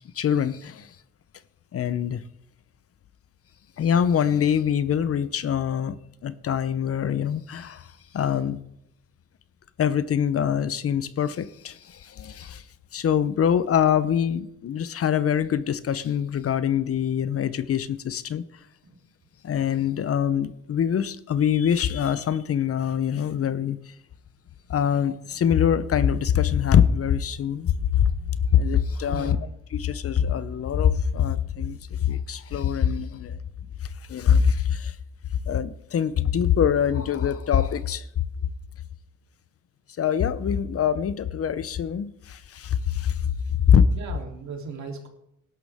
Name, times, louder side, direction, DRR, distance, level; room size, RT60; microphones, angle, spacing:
voice 1, 0.2-0.9 1.7-2.2 3.8-6.0 6.2-7.9 8.1-8.6 9.8-12.6 12.9-18.4 19.4-23.8 24.7-28.1 28.5-29.4 29.7-33.4 34.1-35.0 35.5-38.1 40.0-43.2 43.7-43.9, left 8 dB, 50° left, 0.8 m, -24 dB
voice 2, 29.1-29.5 43.9-45.1, right 5 dB, 65° right, 3.2 m, -37 dB
18.5 x 12.0 x 3.6 m
cardioid pair, 90°, 30 cm